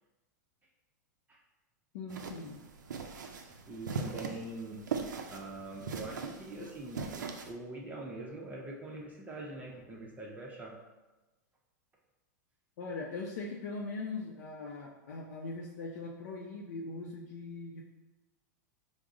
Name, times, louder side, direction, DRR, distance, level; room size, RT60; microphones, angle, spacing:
voice 1, 1.9-2.6 12.8-17.8, left 3 dB, 65° left, -1 dB, 0.5 m, -40 dB
sound 1, 2.1-7.5, right 5 dB, 90° right, 0.4 m, -40 dB
voice 2, 3.7-4.8 5.3-10.7, right 2 dB, 15° right, -2 dB, 0.5 m, -43 dB
3.5 x 2.0 x 3.5 m, 1.1 s
hypercardioid pair, 115°, 10 cm